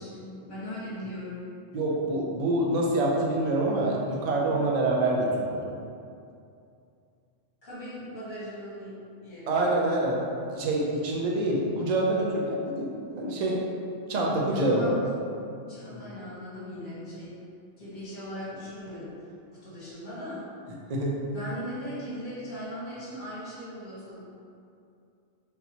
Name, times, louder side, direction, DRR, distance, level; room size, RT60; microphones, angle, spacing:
voice 1, 0.0-1.4 7.6-8.9 9.2-9.7 14.5-14.9 15.7-17.3 17.8-19.1 19.6-20.4 21.3-24.3, equal, 45° left, -10 dB, 1.1 m, -39 dB
voice 2, 1.7-5.7 9.5-10.2 10.5-13.6 14.1-15.0 20.9-21.1, right 2 dB, 55° right, -3 dB, 0.5 m, -26 dB
3.7 x 2.7 x 2.8 m, 2.5 s
omnidirectional pair, 1.2 m